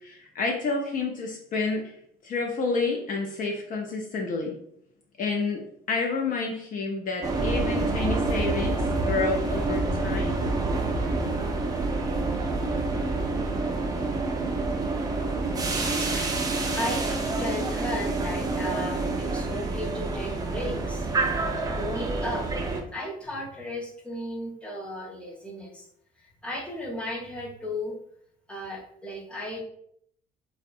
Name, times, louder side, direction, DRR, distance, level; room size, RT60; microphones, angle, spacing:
voice 1, 0.0-1.9 2.2-4.6 5.2-5.6 5.9-10.4, left 4 dB, 55° left, 1 dB, 0.4 m, -29 dB
sound 1, 7.2-22.8, right 3 dB, 20° right, 0.4 m, -27 dB
voice 2, 16.0-22.5 22.9-25.9 26.4-28.0 28.5-29.6, left 1 dB, 5° left, -3 dB, 0.7 m, -35 dB
2.6 x 2.1 x 2.5 m, 0.69 s
cardioid pair, 110°, 17 cm